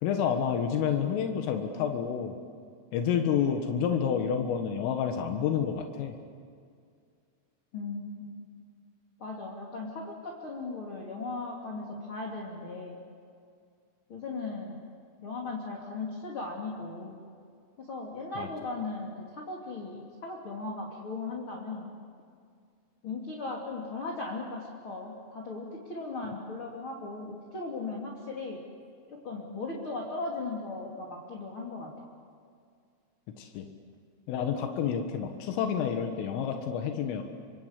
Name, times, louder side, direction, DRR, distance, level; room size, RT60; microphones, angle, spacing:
voice 1, 0.0-2.3 2.9-6.1 18.4-18.5 33.4-33.7 34.3-37.2, left 8 dB, 90° left, 5 dB, 4.1 m, -29 dB
voice 2, 7.7-8.4 9.2-13.0 14.1-14.8 15.2-17.2 17.8-21.9 23.0-28.6 29.1-32.1, left 3 dB, 35° left, -1 dB, 2.8 m, -37 dB
28.5 x 25.5 x 8.2 m, 2.2 s
omnidirectional pair, 5.7 m